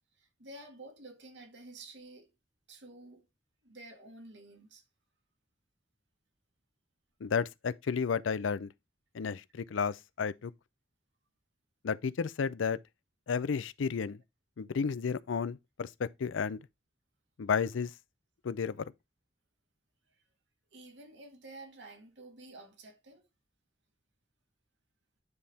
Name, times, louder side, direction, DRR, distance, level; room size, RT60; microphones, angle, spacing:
voice 1, 0.2-2.3 2.7-3.3 3.6-4.8 20.7-23.3, right 2 dB, 65° right, 1.8 m, -51 dB
voice 2, 7.2-8.7 9.1-10.5 11.8-12.8 13.3-14.2 14.6-16.6 17.4-17.9 18.4-18.8, left 6 dB, 90° left, 0.5 m, -32 dB
9.7 x 3.5 x 4.1 m
head